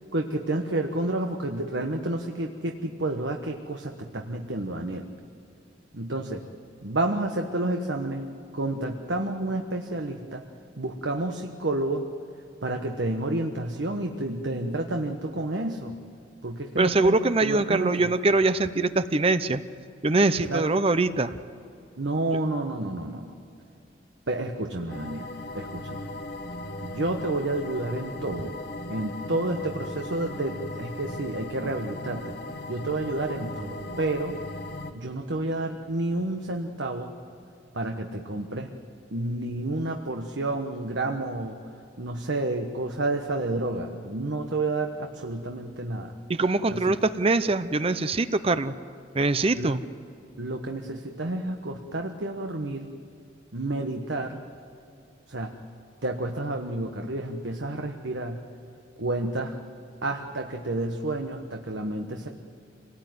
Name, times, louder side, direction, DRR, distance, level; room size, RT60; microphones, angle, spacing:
voice 1, 0.1-5.1 5.9-6.4 6.8-10.4 10.8-12.1 12.6-16.0 16.4-17.2 17.4-18.1 20.5-20.7 22.0-23.4 24.3-26.1 26.8-28.6 28.9-32.3 32.7-34.4 34.9-37.1 37.7-38.7 39.1-41.6 42.0-46.1 46.7-46.9 49.5-49.8 50.4-52.9 53.5-54.4 55.3-55.6 56.0-58.4 59.0-59.6 60.0-62.3, right 2 dB, 75° right, 3 dB, 1.3 m, -30 dB
voice 2, 16.8-19.6 20.0-21.3 46.3-48.7 49.1-49.8, right 3 dB, 30° right, 12 dB, 0.6 m, -23 dB
sound 1, 24.9-34.9, left 1 dB, 60° left, 1.6 m, -37 dB
26.5 x 18.5 x 9.4 m, 2.6 s
head